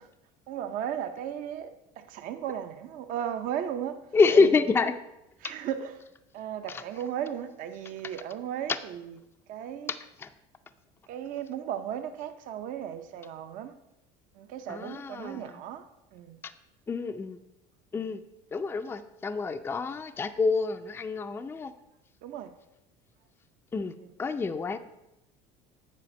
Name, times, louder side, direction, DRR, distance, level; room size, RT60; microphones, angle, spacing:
voice 1, 0.5-4.0 5.4-5.9 6.3-9.0 9.5-9.9 11.1-13.7 14.4-16.4 22.2-22.5, right 9 dB, 60° right, 0.6 m, -35 dB
voice 2, 4.1-4.9 6.7-6.8 8.7-8.8 9.9-10.3 14.7-15.6 16.9-17.4 17.9-18.2 18.5-21.7 23.7-24.8, left 4 dB, 15° left, 0.4 m, -27 dB
8.4 x 4.9 x 5.3 m
supercardioid pair, 100°, 16 cm